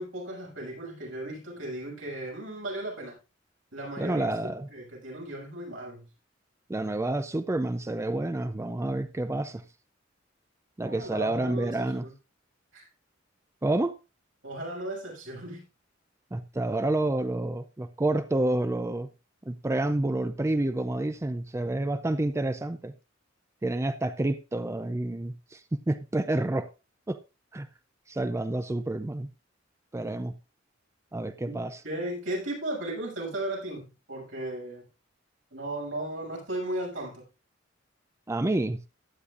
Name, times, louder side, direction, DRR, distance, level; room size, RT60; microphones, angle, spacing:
voice 1, 0.0-3.2 3.7-6.1 10.8-12.1 12.7-12.9 14.4-15.6 31.4-31.6 31.8-34.9 35.5-37.3, right 1 dB, 80° right, 6.8 m, -36 dB
voice 2, 4.0-4.7 6.7-9.6 10.8-12.1 13.6-14.0 16.3-19.1 19.5-22.9 23.6-26.7 27.1-27.2 27.5-27.7 28.1-29.3 29.9-30.3 31.1-31.8 38.3-38.8, right 2 dB, 15° right, 0.4 m, -29 dB
15.5 x 9.8 x 2.5 m
head